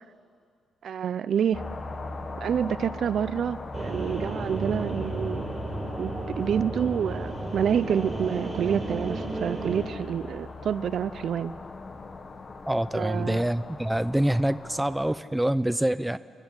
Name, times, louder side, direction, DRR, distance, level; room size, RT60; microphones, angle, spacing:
voice 1, 0.8-1.6 2.4-5.4 6.0-11.5 12.9-13.4, right 8 dB, 60° right, 16 dB, 0.5 m, -28 dB
sound 1, 1.5-15.2, left 3 dB, 35° left, 1.4 m, -40 dB
sound 2, 3.7-9.8, right 2 dB, 25° right, 4.1 m, -33 dB
voice 2, 12.7-16.2, right 1 dB, 5° right, 14 dB, 0.5 m, -26 dB
29.5 x 12.5 x 9.7 m, 2.2 s
cardioid pair, 115°, 0 cm